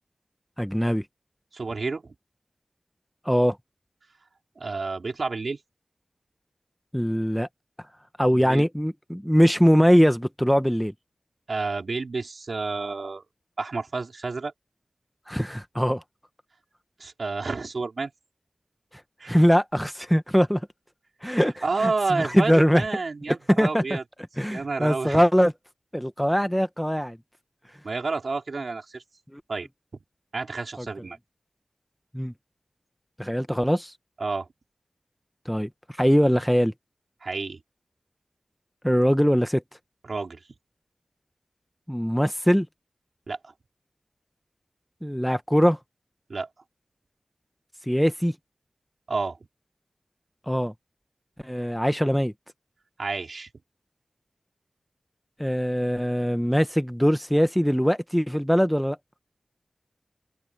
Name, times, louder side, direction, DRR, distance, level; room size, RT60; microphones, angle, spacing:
voice 1, 0.6-1.0 3.2-3.6 6.9-7.5 8.2-10.9 15.3-16.0 19.3-20.6 21.2-22.8 23.3-24.0 24.4-25.5 25.9-27.2 29.3-29.4 30.8-30.9 32.1-32.3 33.2-33.9 35.5-35.7 36.0-36.7 38.8-39.6 41.9-42.7 45.0-45.8 47.9-48.3 50.5-50.7 51.4-52.3 55.4-59.0, equal, ahead, 1.1 m, -22 dB
voice 2, 1.5-2.1 4.6-5.6 8.3-8.6 11.5-13.2 13.6-14.5 17.0-18.1 19.2-19.4 21.2-24.0 24.5-25.2 27.8-29.0 29.5-29.7 30.3-31.2 34.2-34.5 37.2-37.6 40.0-40.4 43.3-43.5 46.3-46.5 49.1-49.4 53.0-53.5, right 3 dB, 75° right, 4.0 m, -30 dB
wide cardioid pair, 65°, 0 cm